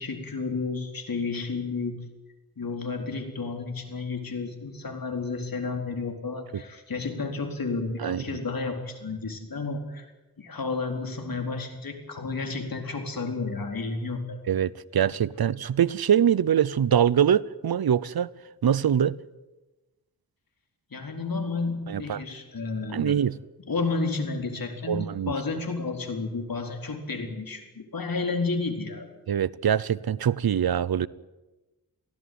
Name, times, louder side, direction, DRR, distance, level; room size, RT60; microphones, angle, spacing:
voice 1, 0.0-2.0 2.6-10.0 10.4-14.4 20.9-23.2 23.7-29.1, left 4 dB, 65° left, 4.3 m, -31 dB
voice 2, 8.0-8.4 14.5-18.3 18.6-19.2 21.9-22.2 22.9-23.4 24.9-25.3 29.3-31.1, right 9 dB, 80° right, 0.8 m, -23 dB
23.5 x 16.5 x 9.5 m
wide cardioid pair, 65°, 37 cm